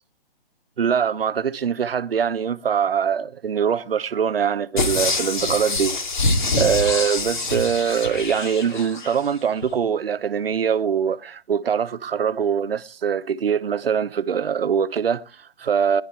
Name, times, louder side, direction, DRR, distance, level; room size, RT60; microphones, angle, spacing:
voice 1, 0.8-6.0 6.6-16.0, right 7 dB, 65° right, 1.0 m, -23 dB
sound 1, 4.8-9.2 9.6-9.7, left 3 dB, 50° left, 2.7 m, -25 dB
20.0 x 11.0 x 4.6 m
hypercardioid pair, 170°, 31 cm